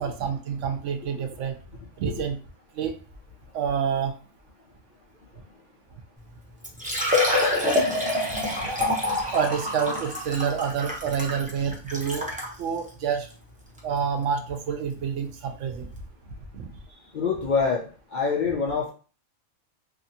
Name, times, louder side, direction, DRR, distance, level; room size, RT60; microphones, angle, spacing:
voice 1, 0.0-1.5 2.0-2.4 2.8-2.9 3.5-4.1 9.3-12.2 12.6-13.3 13.8-15.9 16.5-16.7, right 7 dB, 70° right, 5 dB, 0.9 m, -28 dB
Liquid, 6.2-6.3 6.6-12.5 13.2-13.3 13.8-13.9 15.5-15.6 15.8-15.9, left 1 dB, 10° right, 0.4 m, -26 dB
voice 2, 16.9-18.9, left 5 dB, 65° left, -1 dB, 0.4 m, -26 dB
2.8 x 2.4 x 2.7 m, 0.37 s
omnidirectional pair, 1.4 m